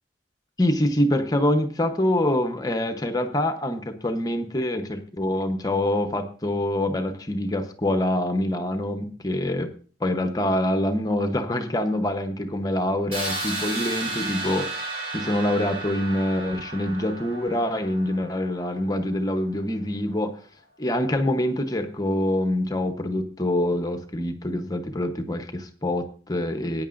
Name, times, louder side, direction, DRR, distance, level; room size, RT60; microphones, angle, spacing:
voice 1, 0.6-9.7 10.0-14.9 15.1-20.4 20.8-26.9, left 1 dB, 20° left, 6 dB, 0.8 m, -25 dB
sound 1, 13.1-18.9, right 2 dB, 30° right, 4.7 m, -33 dB
17.0 x 9.5 x 2.5 m, 0.41 s
head